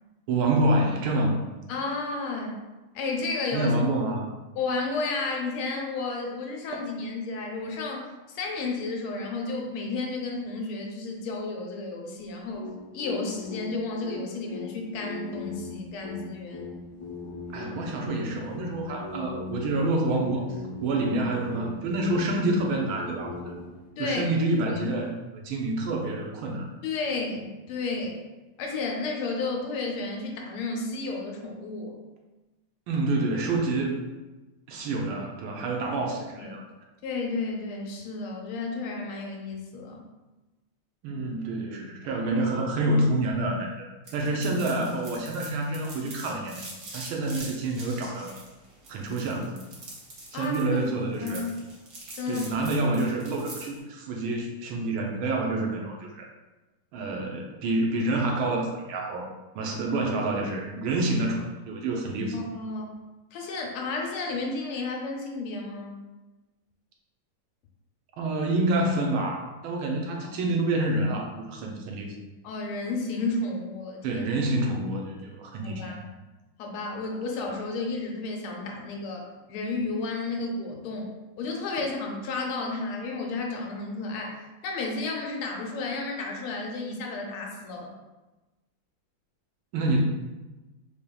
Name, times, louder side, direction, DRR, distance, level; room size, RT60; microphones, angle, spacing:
voice 1, 0.3-1.4 3.5-4.3 6.7-6.8 17.5-20.5 20.8-23.5 24.0-26.7 32.9-34.0 34.7-36.6 41.0-43.9 44.1-46.7 46.9-48.3 48.9-49.6 50.3-51.5 52.3-56.3 56.9-62.4 68.2-72.1 74.0-76.0 89.7-90.0, right 2 dB, 75° right, 1 dB, 1.4 m, -27 dB
voice 2, 1.7-2.6 2.9-3.7 4.6-16.7 24.0-24.2 24.6-24.8 26.8-28.2 28.6-31.9 36.4-36.6 37.0-40.0 50.3-50.6 51.2-51.5 52.2-52.5 59.7-59.8 62.3-62.9 63.3-66.0 70.2-70.3 72.4-74.2 75.6-76.0 76.6-87.9, left 3 dB, 85° left, 1 dB, 1.5 m, -32 dB
sound 1, 12.5-23.9, left 3 dB, 60° left, 0.8 m, -39 dB
sound 2, 44.1-53.8, right 2 dB, 55° right, 0.9 m, -44 dB
5.0 x 2.8 x 2.2 m, 1.1 s
omnidirectional pair, 2.4 m